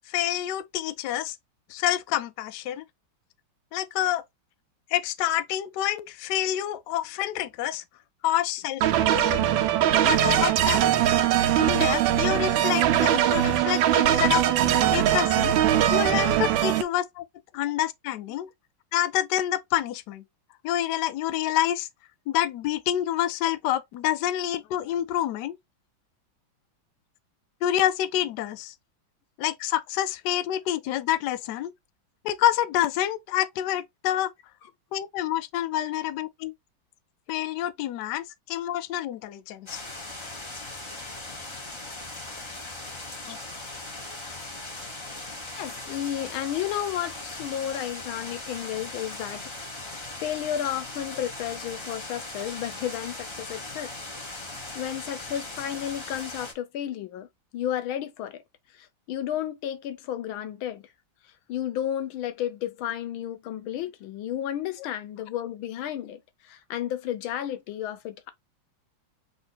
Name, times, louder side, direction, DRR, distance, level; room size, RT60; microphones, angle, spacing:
voice 1, 0.1-1.4 1.7-2.8 3.7-4.2 4.9-7.8 8.2-9.4 10.0-10.9 11.6-14.5 14.9-15.6 15.9-17.2 17.5-18.5 18.9-20.2 20.6-21.9 22.3-25.6 27.6-28.7 29.4-31.7 32.2-34.3 34.9-36.5 37.3-39.8 43.3-43.4, left 12 dB, 75° left, 1.0 m, -27 dB
sound 1, 8.8-16.8, right 11 dB, 80° right, 1.4 m, -21 dB
sound 2, 39.7-56.5, left 2 dB, 20° left, 0.8 m, -39 dB
voice 2, 45.6-53.9 54.8-57.3 57.5-58.4 58.7-60.8 61.5-68.3, left 11 dB, 90° left, 1.6 m, -32 dB
4.0 x 2.8 x 3.9 m
omnidirectional pair, 2.2 m